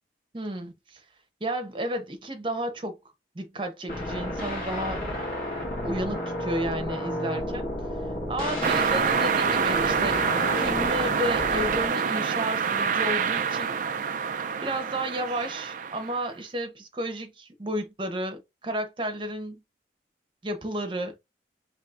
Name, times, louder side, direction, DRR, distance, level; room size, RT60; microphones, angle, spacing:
voice 1, 0.3-1.0 1.4-3.0 3.3-5.0 5.8-7.7 8.3-10.2 10.6-13.7 14.6-19.6 20.4-21.1, right 1 dB, 30° right, 0.9 m, -32 dB
sound 1, 3.9-11.9, left 1 dB, 50° left, 2.1 m, -32 dB
sound 2, 8.6-16.2, right 6 dB, 45° right, 0.3 m, -26 dB
5.8 x 3.0 x 2.5 m
head